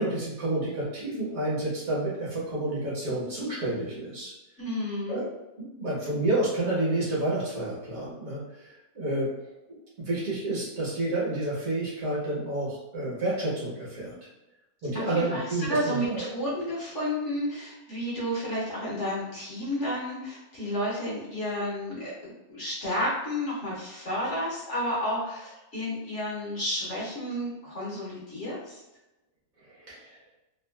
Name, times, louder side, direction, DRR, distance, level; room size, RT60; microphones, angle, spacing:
voice 1, 0.0-4.3 5.1-5.3 5.6-9.3 9.7-9.8 10.0-14.1 14.8-16.2 29.9-30.2, right 2 dB, 60° right, -6 dB, 1.3 m, -29 dB
voice 2, 4.6-5.2 14.9-28.8, equal, 50° left, -7 dB, 1.0 m, -31 dB
3.1 x 2.4 x 2.2 m, 0.97 s
omnidirectional pair, 1.8 m